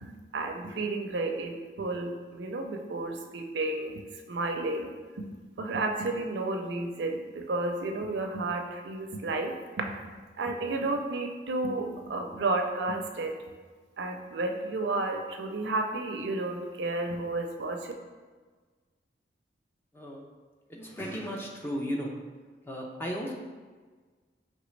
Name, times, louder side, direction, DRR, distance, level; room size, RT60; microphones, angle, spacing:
voice 1, 0.0-4.0 4.3-4.9 5.2-10.0 10.4-13.3 14.0-17.9, right 2 dB, 70° right, 4 dB, 0.4 m, -32 dB
voice 2, 20.7-22.1 22.6-23.3, equal, 10° left, -1 dB, 0.5 m, -35 dB
5.0 x 3.2 x 3.1 m, 1.4 s
head